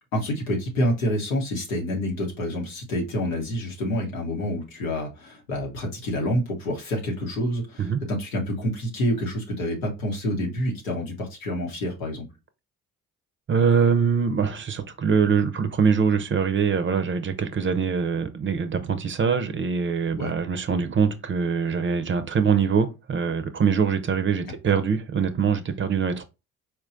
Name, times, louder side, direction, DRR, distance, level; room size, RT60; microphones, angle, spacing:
voice 1, 0.1-12.3 20.2-20.3, equal, 90° left, 0.9 m, -28 dB
voice 2, 13.5-26.2, right 6 dB, 30° right, 0.6 m, -23 dB
4.4 x 2.2 x 2.5 m
hypercardioid pair, 45°, 39 cm